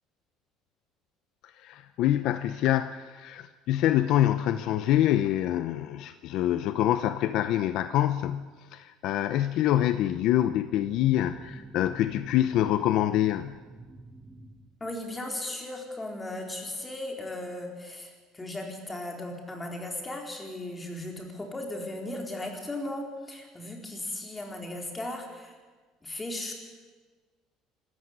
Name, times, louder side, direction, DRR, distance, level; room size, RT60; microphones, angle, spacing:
voice 1, 1.6-13.6, left 12 dB, 55° left, 11 dB, 0.8 m, -26 dB
sound 1, 10.8-15.1, right 2 dB, 10° right, 1.2 m, -47 dB
voice 2, 14.8-25.5 26.0-26.5, left 1 dB, 10° left, 2 dB, 4.2 m, -36 dB
25.5 x 14.5 x 9.6 m, 1.4 s
cardioid pair, 150°, 0 cm